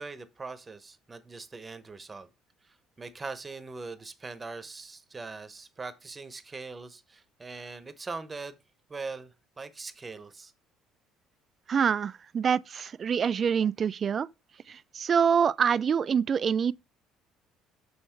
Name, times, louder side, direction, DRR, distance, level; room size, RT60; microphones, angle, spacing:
voice 1, 0.0-2.3 2.6-8.6 8.9-10.5, right 4 dB, 25° right, 0.9 m, -41 dB
voice 2, 11.7-14.3 14.7-16.7, right 7 dB, 45° right, 0.4 m, -26 dB
6.0 x 5.6 x 4.5 m
supercardioid pair, 70°, 0 cm